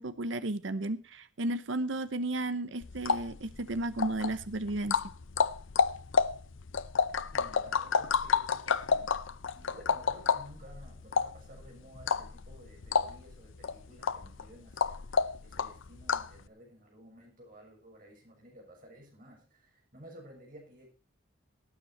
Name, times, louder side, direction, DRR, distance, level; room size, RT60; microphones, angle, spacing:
voice 1, 0.0-5.0, right 2 dB, 70° right, 13 dB, 0.9 m, -33 dB
sound 1, 2.8-16.4, left 5 dB, 80° left, 0.7 m, -31 dB
voice 2, 7.3-9.1 9.5-20.9, equal, 45° right, 0 dB, 6.8 m, -54 dB
18.5 x 9.3 x 4.2 m, 0.32 s
head